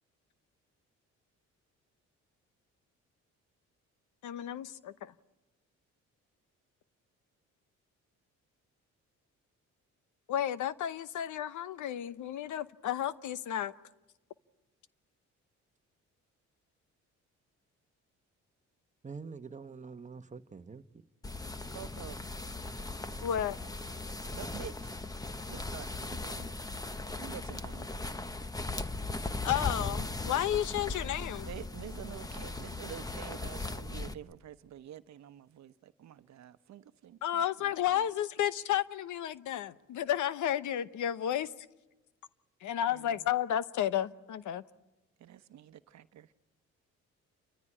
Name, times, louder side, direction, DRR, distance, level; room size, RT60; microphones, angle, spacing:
voice 1, 4.2-5.2 10.3-13.7 23.2-23.6 29.4-31.5 37.2-41.7 42.6-44.6, left 11 dB, 75° left, 1.0 m, -32 dB
voice 2, 19.0-21.0, right 5 dB, 25° right, 1.1 m, -45 dB
sound 1, 21.2-34.1, left 2 dB, 10° left, 1.0 m, -38 dB
voice 3, 21.7-22.2 24.3-24.9 25.5-26.6 27.2-28.2 31.4-37.2 45.2-46.3, right 10 dB, 65° right, 1.0 m, -48 dB
29.5 x 14.5 x 9.9 m
cardioid pair, 90°, 30 cm